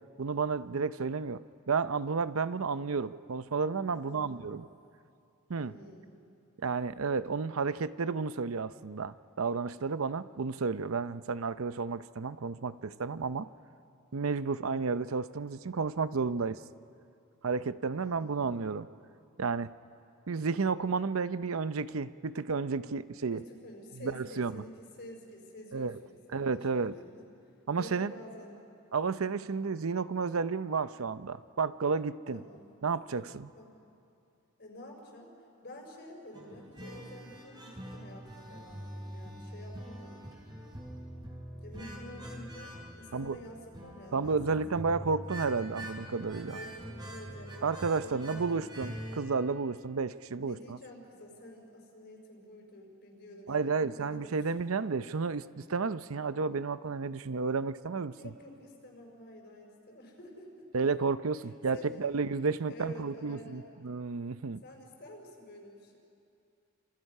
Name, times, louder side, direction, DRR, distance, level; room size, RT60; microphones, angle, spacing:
voice 1, 0.2-1.4 1.7-4.6 5.5-5.7 6.6-13.5 14.1-16.6 17.4-18.9 19.4-19.7 20.3-23.4 24.0-24.6 25.7-25.9 26.3-26.9 27.7-28.1 28.9-32.4 32.8-33.5 43.1-43.4 44.1-46.6 47.6-50.8 53.5-58.1 60.7-64.6, right 4 dB, 80° right, 14 dB, 0.7 m, -32 dB
voice 2, 3.9-4.4 5.5-6.2 17.9-18.6 23.3-27.3 27.7-28.6 32.3-32.7 33.6-33.7 34.6-35.3 35.6-40.2 41.6-45.0 46.5-47.7 48.0-48.7 50.4-54.5 58.1-61.1 61.7-62.1 62.7-63.7 64.6-66.0, left 1 dB, 55° left, 0 dB, 5.1 m, -49 dB
sound 1, 36.3-49.2, equal, 20° right, 3.9 m, -44 dB
29.0 x 27.0 x 5.6 m, 2.6 s
head